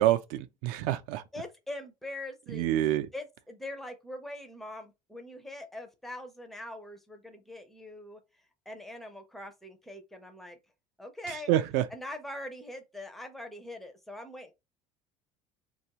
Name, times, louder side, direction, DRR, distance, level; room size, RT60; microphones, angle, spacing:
voice 1, 0.0-1.2 2.5-3.1 11.5-11.9, right 13 dB, 70° right, 0.4 m, -27 dB
voice 2, 1.3-8.2 8.7-10.6 11.0-11.5 11.9-14.5, left 1 dB, ahead, 0.4 m, -42 dB
3.3 x 2.3 x 2.8 m
cardioid pair, 160°, 13 cm